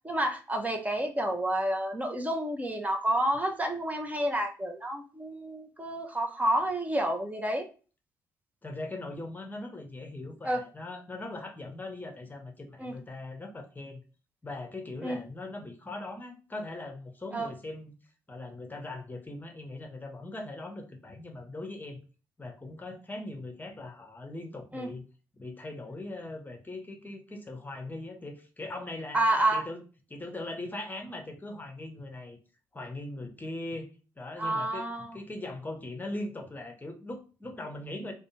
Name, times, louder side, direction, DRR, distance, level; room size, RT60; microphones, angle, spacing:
voice 1, 0.0-7.7 10.4-10.6 12.8-12.9 15.0-15.2 17.3-17.5 24.7-24.9 29.1-29.6 34.4-35.2, right 1 dB, 15° right, 3 dB, 0.6 m, -29 dB
voice 2, 8.6-14.0 14.4-17.9 18.3-22.0 22.4-25.1 25.4-29.8 30.1-32.4 32.7-38.1, left 2 dB, 20° left, 4 dB, 0.8 m, -40 dB
2.5 x 2.1 x 2.9 m, 0.35 s
figure-of-eight pair, 40°, 10 cm